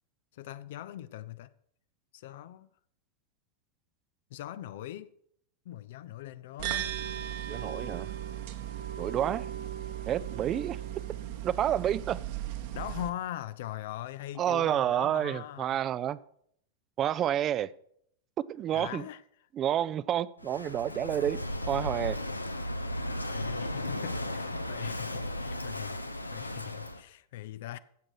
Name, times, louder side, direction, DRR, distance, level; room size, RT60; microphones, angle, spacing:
voice 1, 0.3-1.5 2.1-2.7 4.3-5.1 5.7-7.0 12.7-15.8 18.7-19.2 23.2-27.8, left 13 dB, 55° left, 0.4 m, -41 dB
sound 1, 6.6-13.1, right 11 dB, 50° right, 1.2 m, -37 dB
voice 2, 7.5-8.1 9.0-9.5 10.1-10.8 11.4-12.2 14.4-16.2 17.0-17.7 18.5-19.0 19.6-22.2, right 11 dB, 30° right, 0.4 m, -29 dB
Walk footsteps / Wind / Waves surf, 20.4-27.0, left 1 dB, 85° left, 0.7 m, -35 dB
15.0 x 7.4 x 4.7 m
figure-of-eight pair, 90°, 0 cm